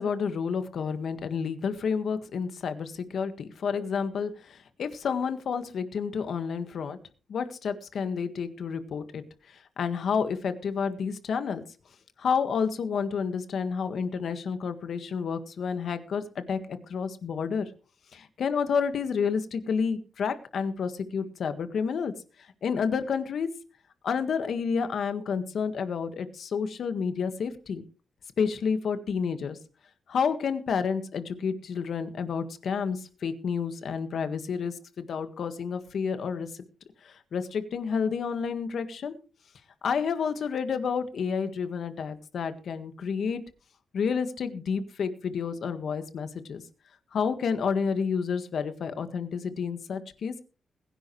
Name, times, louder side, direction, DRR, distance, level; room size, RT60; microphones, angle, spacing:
voice 1, 0.0-7.0 7.3-11.6 12.2-17.7 18.1-22.1 22.6-23.5 24.0-27.8 28.4-29.6 30.1-36.5 37.0-39.1 39.8-43.4 43.9-46.6 47.1-50.4, left 6 dB, 55° left, 10 dB, 1.7 m, -30 dB
21.0 x 10.5 x 3.2 m, 0.34 s
wide cardioid pair, 170°, 0 cm